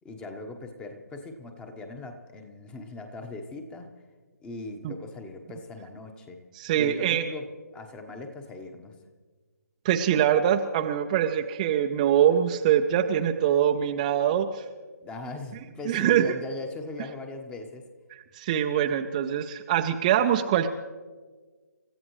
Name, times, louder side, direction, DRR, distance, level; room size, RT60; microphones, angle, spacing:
voice 1, 0.0-3.9 4.4-6.4 6.7-7.5 7.7-9.0 15.0-17.8, left 2 dB, 10° left, 6 dB, 1.2 m, -39 dB
voice 2, 6.5-7.2 9.8-14.6 15.9-16.3 18.3-20.7, right 10 dB, 25° right, 4 dB, 0.7 m, -23 dB
29.0 x 14.5 x 3.2 m, 1.4 s
figure-of-eight pair, 145°, 9 cm